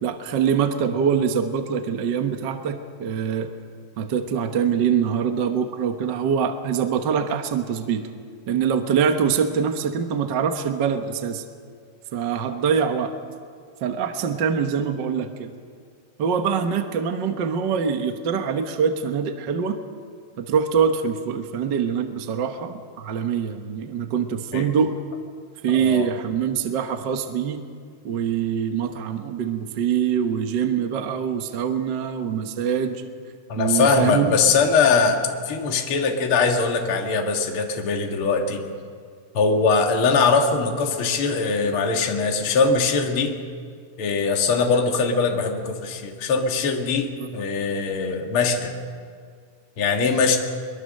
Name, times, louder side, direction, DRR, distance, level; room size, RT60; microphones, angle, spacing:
voice 1, 0.0-3.5 4.0-8.1 8.5-11.4 12.1-13.1 13.8-15.5 16.2-19.8 20.4-24.9 25.6-27.6 28.0-33.0 33.6-34.3 47.2-47.3, right 7 dB, 55° right, 6 dB, 1.3 m, -24 dB
voice 2, 25.7-26.1 33.5-35.2 35.5-38.6 39.3-43.3 44.0-48.7 49.8-50.4, left 4 dB, 50° left, 2 dB, 2.5 m, -21 dB
23.0 x 22.5 x 6.5 m, 2.1 s
omnidirectional pair, 3.3 m